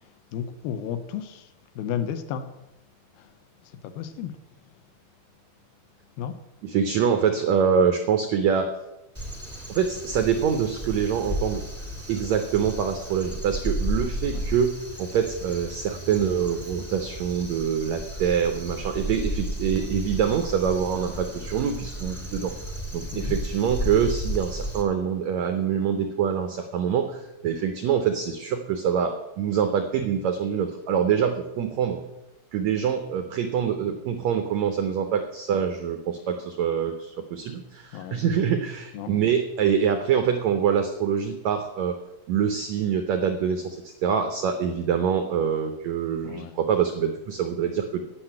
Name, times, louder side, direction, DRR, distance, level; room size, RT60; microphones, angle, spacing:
voice 1, 0.3-1.5 1.8-2.5 3.2-3.3 3.6-4.3 6.2-6.3 14.3-14.5 23.1-23.4 37.9-38.2 38.9-39.1 46.2-46.6, left 9 dB, 80° left, 2.6 m, -33 dB
voice 2, 6.6-8.7 9.7-11.6 12.1-22.5 22.9-32.0 32.5-42.0 42.3-48.0, right 7 dB, 85° right, 1.5 m, -25 dB
Crow, 9.1-24.8, equal, 10° right, 0.7 m, -33 dB
10.0 x 6.2 x 8.7 m
omnidirectional pair, 4.3 m